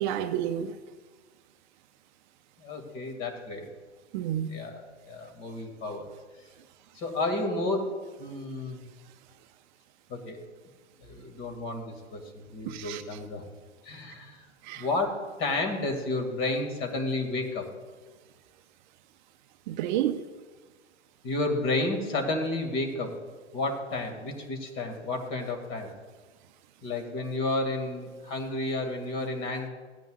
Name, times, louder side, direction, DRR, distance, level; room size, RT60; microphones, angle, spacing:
voice 1, 0.0-0.7 4.1-4.5 12.7-13.0 14.6-14.9 19.7-20.2, right 11 dB, 45° right, 9 dB, 0.6 m, -30 dB
voice 2, 2.6-3.7 4.5-6.1 7.0-7.9 8.2-8.8 10.1-10.4 11.0-13.4 13.8-14.4 14.7-17.7 21.2-23.1 23.5-25.9 26.8-29.7, left 2 dB, 35° left, 4 dB, 2.3 m, -31 dB
16.0 x 9.2 x 2.4 m, 1.4 s
hypercardioid pair, 105°, 35 cm